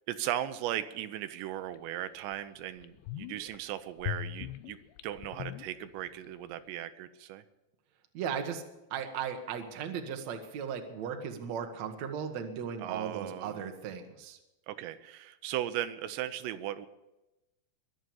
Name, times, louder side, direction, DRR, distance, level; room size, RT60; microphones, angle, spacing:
voice 1, 0.1-4.8 5.0-7.4 12.8-13.7 14.7-16.9, right 12 dB, 85° right, 11 dB, 2.9 m, -37 dB
sound 1, 1.7-1.8 2.3-2.4 2.8-3.6 4.0-6.3 6.5-6.6, left 13 dB, 85° left, 3.0 m, -40 dB
voice 2, 8.1-8.6 8.9-14.4, right 7 dB, 60° right, 5 dB, 2.0 m, -36 dB
22.5 x 7.9 x 7.0 m, 0.98 s
omnidirectional pair, 5.0 m